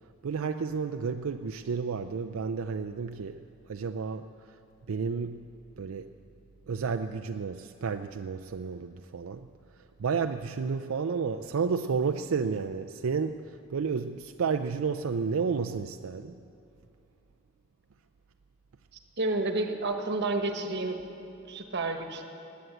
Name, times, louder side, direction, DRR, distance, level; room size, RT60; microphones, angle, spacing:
voice 1, 0.2-4.6 4.9-6.1 6.7-9.5 9.8-16.4, right 5 dB, 85° right, 7 dB, 0.4 m, -31 dB
voice 2, 19.2-21.0 21.5-22.2, right 2 dB, 55° right, 5 dB, 1.4 m, -30 dB
19.0 x 9.4 x 7.9 m, 2.8 s
head